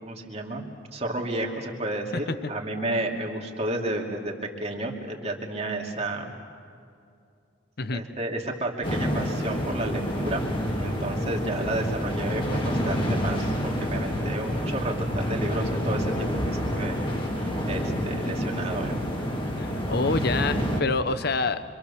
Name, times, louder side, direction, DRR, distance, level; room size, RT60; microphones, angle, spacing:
voice 1, 0.0-0.6 0.9-4.3 4.6-6.4 7.9-10.4 10.8-13.5 13.8-16.9 17.4-19.0, right 1 dB, 35° right, 0 dB, 2.8 m, -32 dB
sound 1, 8.8-20.8, equal, 30° left, 2.6 m, -28 dB
voice 2, 19.6-21.6, left 3 dB, 60° left, 12 dB, 0.9 m, -27 dB
26.0 x 26.0 x 7.1 m, 2.4 s
head